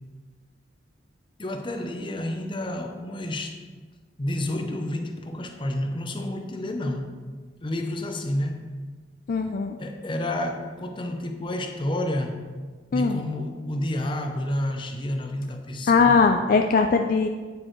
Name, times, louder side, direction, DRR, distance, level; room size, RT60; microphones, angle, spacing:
voice 1, 1.4-3.6 4.2-7.1 7.6-8.7 9.8-12.4 12.9-16.3, left 1 dB, 25° left, 5 dB, 0.7 m, -30 dB
voice 2, 9.3-9.8 12.9-13.2 15.9-17.3, left 4 dB, 50° left, 5 dB, 0.3 m, -20 dB
8.6 x 7.5 x 3.2 m, 1.5 s
head